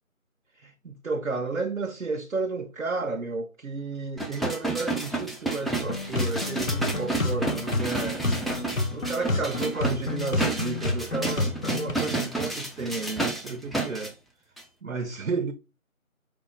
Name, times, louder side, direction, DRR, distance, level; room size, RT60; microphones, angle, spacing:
voice 1, 0.6-8.3 8.9-14.2 14.8-15.5, right 3 dB, 70° right, 0.6 m, -32 dB
sound 1, 4.2-14.1 14.6-14.7, right 2 dB, ahead, 0.4 m, -31 dB
sound 2, 5.8-11.9, left 2 dB, 65° left, 0.9 m, -30 dB
5.0 x 2.3 x 3.9 m
figure-of-eight pair, 175°, 42 cm